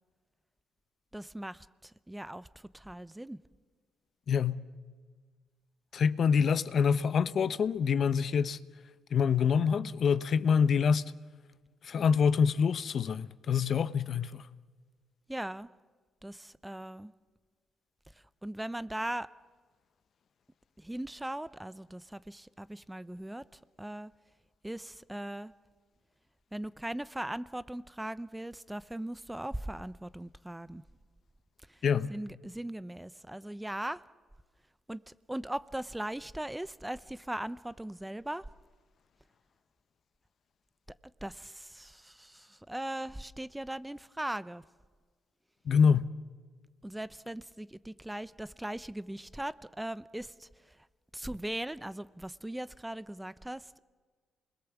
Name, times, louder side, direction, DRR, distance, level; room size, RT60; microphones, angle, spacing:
voice 1, 1.1-3.4 15.3-15.7 16.2-17.1 18.4-19.3 20.8-23.4 23.8-24.1 24.6-25.5 26.5-30.8 31.7-31.8 32.1-34.0 34.9-38.5 41.2-44.6 46.8-50.8 51.1-53.8, right 1 dB, 10° right, 0.7 m, -39 dB
voice 2, 4.3-4.6 5.9-8.6 9.1-11.1 11.8-14.4 31.8-32.1 45.7-46.1, left 6 dB, 60° left, 0.7 m, -26 dB
28.0 x 21.0 x 7.2 m
supercardioid pair, 70°, 0 cm